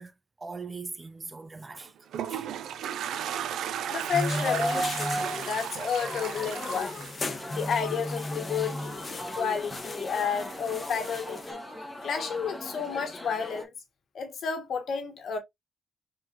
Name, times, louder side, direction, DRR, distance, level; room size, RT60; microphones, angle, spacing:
voice 1, 0.0-2.5, right 4 dB, 25° right, 0.6 m, -41 dB
Toilet flush, 1.8-8.1, right 9 dB, 80° right, 0.5 m, -35 dB
voice 2, 3.9-6.9 7.5-11.6 12.0-13.7 14.1-15.4, left 6 dB, 65° left, 1.4 m, -31 dB
sound 1, 4.1-11.5, left 1 dB, 35° left, 1.2 m, -34 dB
sound 2, 7.4-13.6, left 1 dB, 5° left, 1.4 m, -40 dB
4.5 x 3.8 x 2.6 m
cardioid pair, 80°, 0 cm